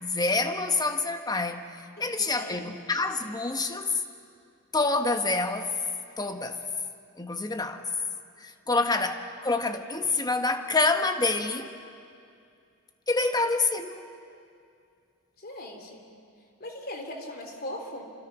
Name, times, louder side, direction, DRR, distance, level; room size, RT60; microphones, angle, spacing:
voice 1, 0.0-1.6 2.0-3.9 4.7-5.7 6.2-6.6 7.2-7.9 8.4-11.7 13.1-14.1, left 3 dB, 20° left, 1.2 m, -27 dB
voice 2, 2.0-2.7 3.2-3.3 8.6-8.9 13.2-13.3 15.4-16.1 16.6-18.0, left 1 dB, 45° left, 3.2 m, -40 dB
28.5 x 25.5 x 6.1 m
head